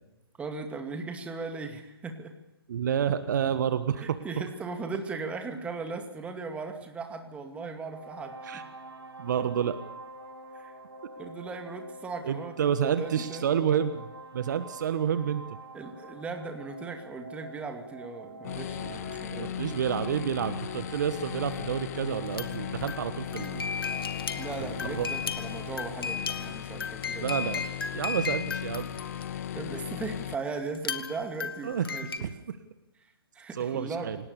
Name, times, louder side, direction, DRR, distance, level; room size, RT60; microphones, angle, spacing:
voice 1, 0.4-2.3 3.9-8.6 10.5-10.8 11.2-13.5 15.7-19.6 24.4-27.3 29.5-32.3 33.0-34.2, right 4 dB, 10° right, 5 dB, 2.4 m, -38 dB
voice 2, 2.7-4.2 8.4-8.6 9.2-9.8 12.2-14.1 14.3-15.4 19.3-23.6 24.6-24.7 24.9-25.1 27.2-27.6 27.9-28.9 31.6-31.9 32.2-32.6 33.5-34.2, right 8 dB, 50° right, 11 dB, 1.4 m, -29 dB
sound 1, 7.7-26.5, right 2 dB, 80° right, 4.6 m, -47 dB
sound 2, 18.4-30.3, left 10 dB, 40° left, 0.8 m, -37 dB
sound 3, 22.1-29.7 30.7-32.2, left 6 dB, 65° left, 2.1 m, -36 dB
29.0 x 19.0 x 7.0 m, 0.98 s
figure-of-eight pair, 130°, 13 cm